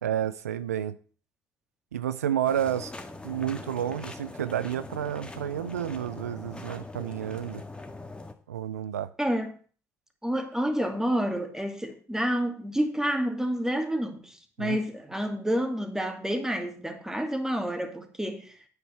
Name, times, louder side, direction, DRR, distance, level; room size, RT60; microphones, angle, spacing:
voice 1, 0.0-1.0 1.9-2.9 3.2-7.6 8.5-9.1 14.6-14.8, right 10 dB, 85° right, 0.4 m, -30 dB
sound 1, 2.5-8.3, left 2 dB, 15° left, 1.8 m, -42 dB
voice 2, 9.2-9.5 10.2-18.5, equal, 5° right, 2.3 m, -29 dB
10.5 x 8.5 x 4.4 m
figure-of-eight pair, 50°, 8 cm